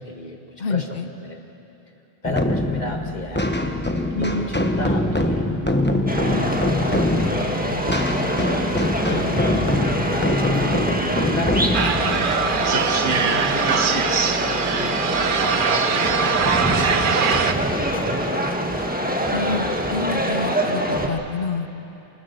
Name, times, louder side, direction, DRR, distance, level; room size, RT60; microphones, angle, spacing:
voice 1, 0.0-1.4 2.2-5.5 6.4-15.0 15.4-19.3, left 1 dB, 45° left, 2 dB, 2.2 m, -34 dB
voice 2, 0.6-1.1 19.3-19.6 19.9-21.7, left 4 dB, 65° left, 8 dB, 1.1 m, -27 dB
sound 1, 2.2-13.7, left 1 dB, 10° left, 1.1 m, -23 dB
sound 2, 6.1-21.1, equal, 10° right, 1.5 m, -25 dB
sound 3, 11.7-17.5, right 6 dB, 60° right, 1.0 m, -22 dB
25.0 x 20.5 x 6.8 m, 2.9 s
omnidirectional pair, 1.0 m